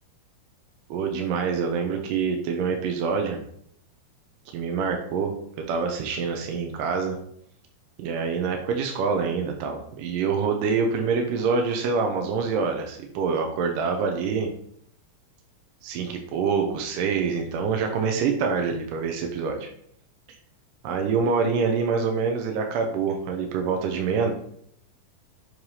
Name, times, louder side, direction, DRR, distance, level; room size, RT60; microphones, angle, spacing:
voice 1, 0.9-3.4 4.5-5.3 5.7-7.2 8.0-14.5 15.8-19.7 20.8-24.3, right 5 dB, 85° right, 3 dB, 2.5 m, -26 dB
7.8 x 3.3 x 5.5 m, 0.68 s
omnidirectional pair, 3.7 m